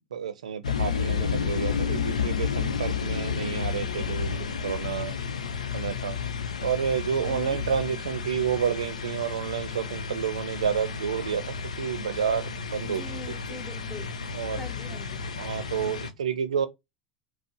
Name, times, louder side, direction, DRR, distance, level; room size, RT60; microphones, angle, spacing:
voice 1, 0.1-5.2 5.7-6.2 6.6-13.6 14.3-14.7 15.4-16.7, right 8 dB, 85° right, 0.5 m, -30 dB
sound 1, 0.6-16.1, left 6 dB, 90° left, 0.5 m, -31 dB
voice 2, 7.2-7.6 12.8-14.1 14.5-15.2, left 3 dB, 15° left, 0.9 m, -42 dB
4.4 x 2.0 x 3.0 m
hypercardioid pair, 85°, 4 cm